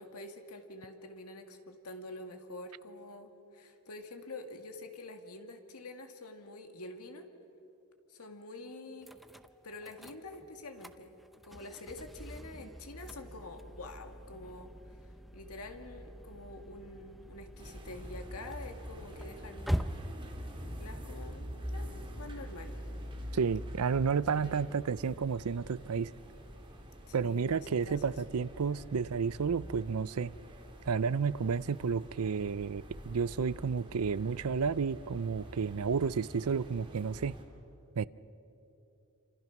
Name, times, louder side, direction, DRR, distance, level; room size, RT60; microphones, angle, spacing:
voice 1, 0.0-7.3 8.1-9.1 9.6-11.2 11.4-14.7 15.3-19.8 20.8-22.8 24.3-24.6 27.1-28.2, left 2 dB, 80° left, 5 dB, 2.2 m, -47 dB
sound 1, 9.0-27.0, equal, ahead, 0.6 m, -45 dB
sound 2, 17.6-37.4, equal, 25° right, 3.4 m, -46 dB
voice 2, 23.3-26.1 27.1-30.3 30.9-37.3 38.0-38.1, right 5 dB, 75° right, 19 dB, 0.5 m, -31 dB
28.0 x 26.5 x 6.0 m, 3.0 s
head